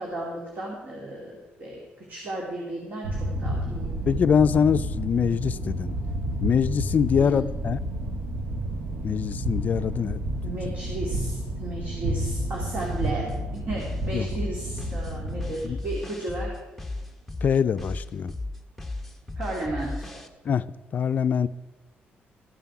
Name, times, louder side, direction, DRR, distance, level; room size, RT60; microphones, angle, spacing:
voice 1, 0.0-3.9 7.2-7.5 10.4-16.5 19.4-19.9, right 2 dB, 50° right, -2 dB, 2.3 m, -34 dB
sound 1, 3.0-15.5, right 1 dB, 80° right, 1.6 m, -31 dB
voice 2, 4.1-5.9 6.4-7.8 9.0-10.2 14.1-14.3 15.6-15.8 17.4-18.3 20.5-20.6 20.9-21.5, left 7 dB, 45° left, 14 dB, 0.4 m, -23 dB
sound 2, 12.3-20.3, left 2 dB, 5° left, 0.9 m, -35 dB
13.5 x 7.5 x 5.9 m, 1.1 s
cardioid pair, 135°, 4 cm